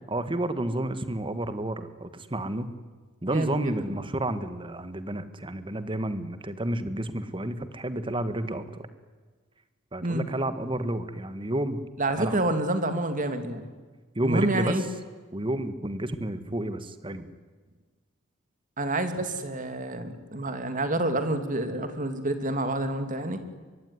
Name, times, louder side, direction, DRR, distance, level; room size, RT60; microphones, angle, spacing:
voice 1, 0.1-2.7 3.2-8.9 9.9-11.8 12.2-12.4 14.2-14.9 15.3-17.3, right 1 dB, 25° right, 12 dB, 1.6 m, -30 dB
voice 2, 3.3-3.9 10.0-10.2 12.0-13.7 14.2-14.8 18.8-23.4, right 2 dB, 40° right, 9 dB, 2.7 m, -28 dB
23.5 x 23.0 x 9.8 m, 1.4 s
head